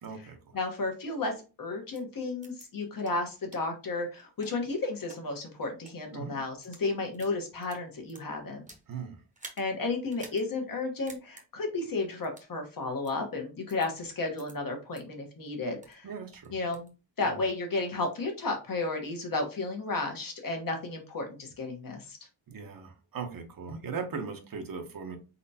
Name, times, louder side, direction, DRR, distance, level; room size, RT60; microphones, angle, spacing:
voice 1, 0.0-0.6 6.1-6.4 8.9-9.2 16.0-16.5 17.2-17.4 22.5-25.2, right 5 dB, 50° right, 5 dB, 0.9 m, -39 dB
voice 2, 0.5-8.6 9.6-16.1 16.5-22.2, left 3 dB, 50° left, 3 dB, 1.3 m, -33 dB
sound 1, 1.9-2.0 2.4-2.6 3.0-3.1 3.5-3.6 4.2-5.2 5.7-5.9 6.5-6.8 7.1-8.9 9.3-9.6 10.1-10.4 10.7-10.8 11.1-11.4 12.2-12.5 13.0-13.1 13.7-13.9 14.4-14.5 14.9-15.0 15.5-16.0 16.3-16.9, right 2 dB, 15° right, 1.0 m, -50 dB
4.4 x 4.1 x 2.8 m, 0.31 s
wide cardioid pair, 180°, 44 cm